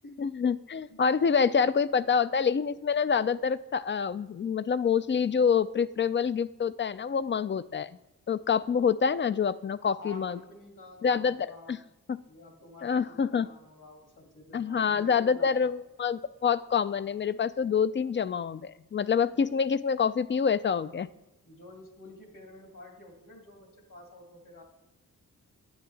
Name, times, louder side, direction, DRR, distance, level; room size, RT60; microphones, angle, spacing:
voice 1, 0.2-8.0 8.3-10.4 11.0-11.8 12.1-12.2 12.8-13.5 14.5-21.1, left 6 dB, 35° left, 16 dB, 0.4 m, -27 dB
voice 2, 10.0-11.8 12.3-15.7 19.3-19.4 21.4-24.6, left 2 dB, 60° left, 1 dB, 2.4 m, -49 dB
9.4 x 8.5 x 3.3 m, 0.98 s
cardioid pair, 40°, 36 cm